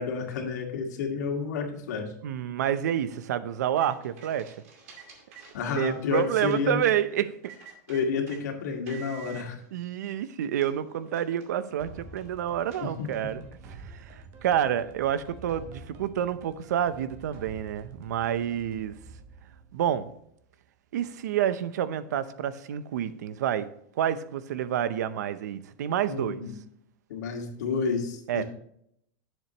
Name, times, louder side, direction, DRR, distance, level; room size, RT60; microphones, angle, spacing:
voice 1, 0.0-2.1 5.5-6.8 7.9-9.6 12.8-13.1 26.1-26.5 27.1-28.4, left 5 dB, 75° left, 2 dB, 2.0 m, -30 dB
voice 2, 2.2-4.5 5.8-7.3 9.7-13.4 13.7-19.0 19.7-20.1 20.9-23.7 24.0-26.4 28.3-28.4, right 10 dB, 80° right, 14 dB, 0.7 m, -28 dB
sound 1, 3.5-7.0 7.4-8.4 8.9-9.4 10.1-10.2 10.5-13.4, right 6 dB, 55° right, 2.3 m, -50 dB
sound 2, 11.8-20.6, right 3 dB, 25° right, 0.9 m, -48 dB
9.9 x 7.4 x 3.0 m, 0.70 s
supercardioid pair, 180°, 9 cm